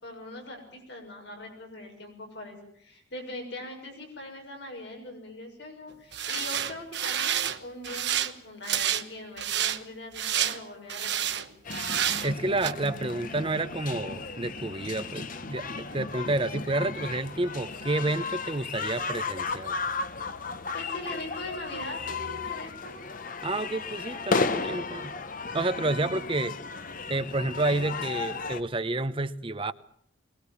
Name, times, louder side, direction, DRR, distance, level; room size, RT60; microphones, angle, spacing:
voice 1, 0.0-11.5 20.7-23.0 25.8-26.2, left 1 dB, 55° left, 6.8 m, -41 dB
sound 1, 6.1-7.6 7.8-8.3 8.6-9.0 9.4-9.8 10.1-10.6 10.9-11.4 11.7-12.3 12.6-12.7, right 10 dB, 55° right, 1.2 m, -29 dB
sound 2, 11.6-28.6, left 4 dB, 40° left, 1.1 m, -34 dB
voice 2, 12.2-19.7 23.4-25.1 25.5-26.6 27.1-29.7, right 2 dB, 25° right, 0.8 m, -29 dB
22.0 x 21.5 x 7.2 m
head